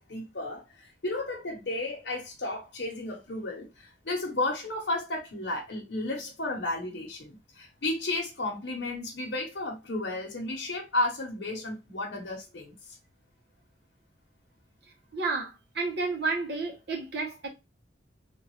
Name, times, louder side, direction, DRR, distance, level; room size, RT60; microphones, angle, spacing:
voice 1, 0.0-12.7, left 2 dB, 60° left, 1.0 m, -33 dB
voice 2, 15.1-17.5, right 3 dB, 55° right, 1.0 m, -31 dB
3.7 x 2.5 x 3.1 m
head